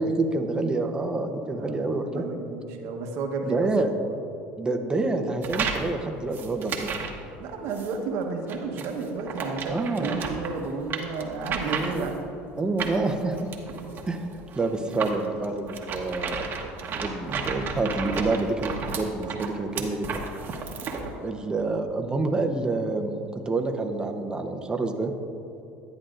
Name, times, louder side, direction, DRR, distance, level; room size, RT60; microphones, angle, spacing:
voice 1, 0.0-2.3 3.4-3.9 4.6-6.9 9.7-10.1 11.7-12.1 12.6-13.5 14.1-14.2 14.6-16.5 17.0-20.2 21.2-25.1, right 3 dB, 15° right, 5 dB, 0.8 m, -27 dB
voice 2, 1.5-3.7 7.4-12.2 13.7-13.9, right 4 dB, 70° right, 3 dB, 1.1 m, -32 dB
sound 1, 5.4-5.9 6.3-7.2 7.7-7.9 8.5-12.2 12.8-21.1, right 5 dB, 45° right, 1.1 m, -33 dB
11.0 x 9.3 x 2.5 m, 2.9 s
supercardioid pair, 95°, 5 cm